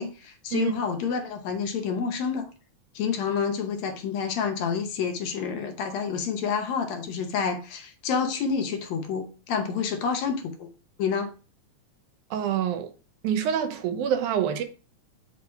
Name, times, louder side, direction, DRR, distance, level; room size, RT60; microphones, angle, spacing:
voice 1, 0.0-2.5 3.0-10.7 11.0-11.3, left 6 dB, 70° left, 2.0 m, -28 dB
voice 2, 12.3-12.9 13.2-14.6, right 9 dB, 85° right, 2.2 m, -26 dB
6.2 x 3.0 x 5.5 m
omnidirectional pair, 3.4 m